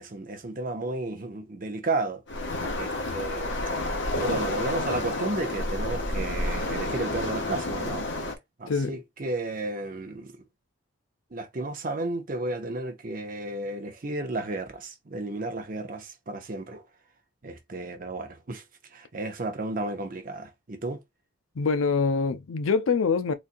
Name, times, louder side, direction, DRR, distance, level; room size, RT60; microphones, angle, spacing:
voice 1, 0.0-2.2 2.7-3.6 4.1-8.0 8.6-10.4 11.3-16.8 17.4-18.6 18.9-21.0, right 2 dB, 40° right, 0.7 m, -33 dB
Waves surf, 2.3-8.4, left 2 dB, 60° left, 0.9 m, -30 dB
voice 2, 8.7-9.0 21.6-23.3, left 5 dB, 80° left, 0.5 m, -24 dB
4.0 x 2.4 x 2.5 m
head